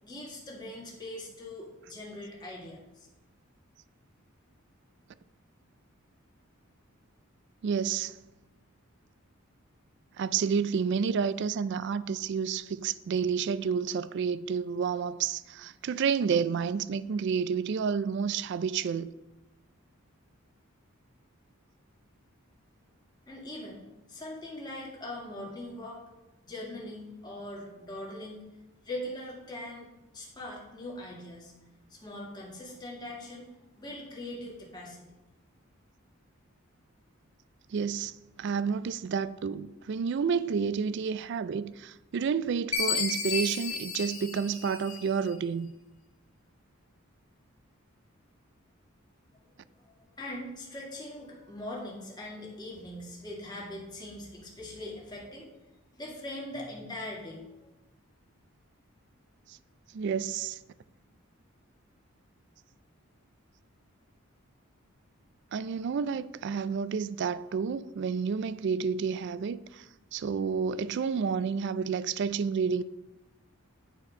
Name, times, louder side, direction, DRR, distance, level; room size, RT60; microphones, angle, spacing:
voice 1, 0.0-3.1 23.3-26.0 26.4-28.4 28.8-31.5 31.9-35.1 49.8-55.5 55.9-57.7, left 1 dB, 20° left, 1.9 m, -41 dB
voice 2, 7.6-8.2 10.2-19.1 37.7-45.7 59.5-59.6 59.9-60.6 65.5-69.9 70.1-72.8, right 6 dB, 55° right, 0.3 m, -30 dB
Chime, 42.7-45.3, left 5 dB, 85° left, 1.5 m, -32 dB
9.9 x 4.3 x 5.1 m
head